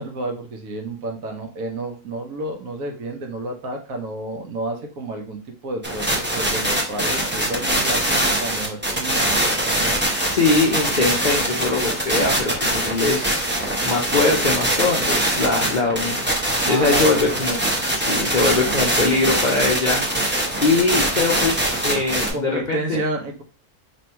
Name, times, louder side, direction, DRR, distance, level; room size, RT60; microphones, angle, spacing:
voice 1, 0.0-9.4 9.8-10.0 16.6-17.5 22.3-23.4, right 2 dB, 70° right, 3 dB, 1.2 m, -30 dB
sound 1, 5.8-22.3, right 1 dB, 15° right, 0.4 m, -22 dB
voice 2, 10.3-13.4 13.8-17.6 18.0-20.0 20.6-23.0, left 3 dB, 55° left, -2 dB, 0.5 m, -22 dB
3.0 x 2.6 x 4.4 m, 0.36 s
omnidirectional pair, 1.6 m